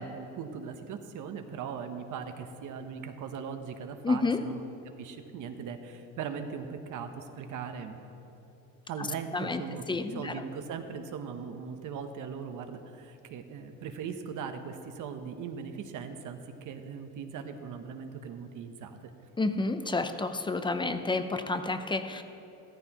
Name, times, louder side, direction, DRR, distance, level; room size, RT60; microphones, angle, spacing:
voice 1, 0.0-4.7 5.0-8.0 8.9-19.1, right 6 dB, 55° right, 6 dB, 0.9 m, -39 dB
voice 2, 4.0-4.4 9.0-9.1 9.3-9.6 9.9-10.4 19.4-22.2, left 3 dB, 15° left, 9 dB, 0.5 m, -30 dB
14.5 x 14.0 x 3.0 m, 2.9 s
cardioid pair, 115°, 37 cm